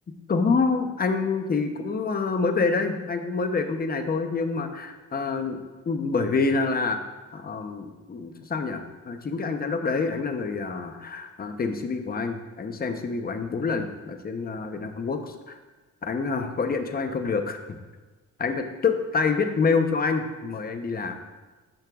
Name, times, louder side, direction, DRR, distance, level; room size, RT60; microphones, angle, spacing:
voice 1, 0.3-5.6 5.9-7.0 7.3-15.5 16.0-17.8 18.4-21.2, left 4 dB, 30° left, 6 dB, 0.9 m, -27 dB
12.0 x 7.8 x 2.4 m, 1.2 s
cardioid pair, 90°, 30 cm